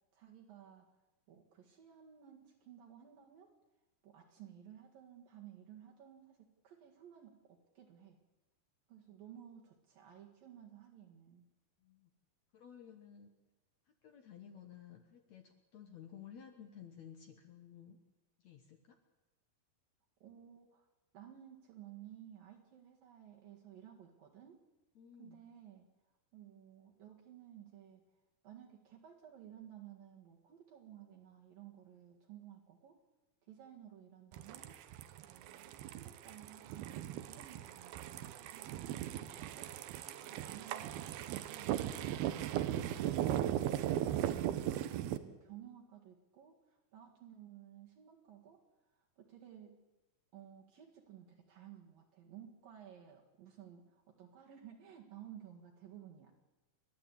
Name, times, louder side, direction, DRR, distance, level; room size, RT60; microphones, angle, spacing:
voice 1, 0.1-0.9 1.3-3.5 4.0-8.2 8.9-11.5 20.2-20.9 21.1-24.6 25.2-25.9 26.3-28.0 28.4-33.0 33.5-34.8 35.2-39.7 40.3-42.7 44.9-48.6 49.0-49.8 50.3-56.3, right 10 dB, 70° right, -2 dB, 3.6 m, -55 dB
voice 2, 12.5-13.3 13.9-18.0 18.4-19.0 25.0-25.4 40.2-40.4, left 8 dB, 60° left, 5 dB, 2.1 m, -55 dB
sound 1, 34.3-45.2, right 12 dB, 85° right, 2.9 m, -38 dB
30.0 x 12.0 x 8.5 m, 1.1 s
omnidirectional pair, 4.3 m